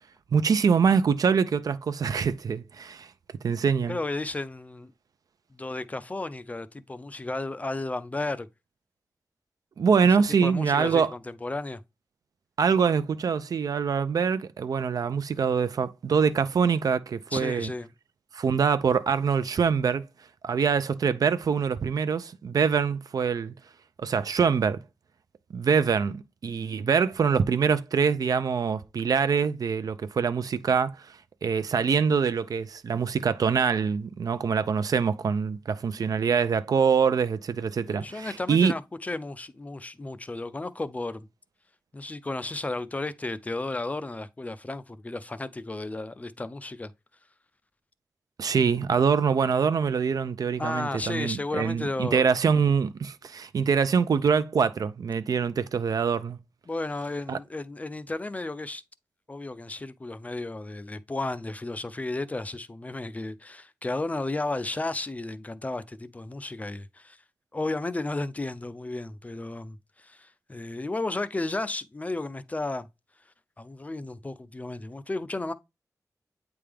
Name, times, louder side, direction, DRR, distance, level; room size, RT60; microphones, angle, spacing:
voice 1, 0.3-3.1 3.4-4.0 9.8-11.1 12.6-17.7 18.3-20.1 20.4-23.5 24.0-24.8 25.5-30.9 31.4-38.7 48.4-56.4 57.3-57.4, right 6 dB, 75° right, 0.5 m, -24 dB
voice 2, 3.9-4.9 5.5-8.5 10.0-11.8 17.3-17.9 37.8-41.3 41.9-46.9 50.6-52.2 56.7-58.8 59.3-67.2 67.5-72.9 73.6-75.5, left 2 dB, 25° left, 0.4 m, -33 dB
8.7 x 3.5 x 3.4 m
wide cardioid pair, 140°, 6 cm